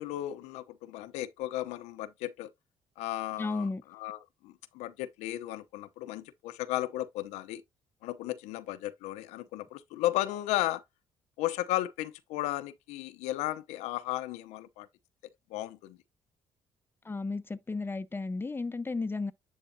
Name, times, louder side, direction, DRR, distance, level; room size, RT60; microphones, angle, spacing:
voice 1, 0.0-2.5 3.0-7.6 8.0-10.8 11.4-14.9 15.5-16.0, left 15 dB, 85° left, 0.8 m, -35 dB
voice 2, 3.4-3.8 17.0-19.3, left 3 dB, 20° left, 0.8 m, -33 dB
10.0 x 4.0 x 2.7 m
supercardioid pair, 70°, 11 cm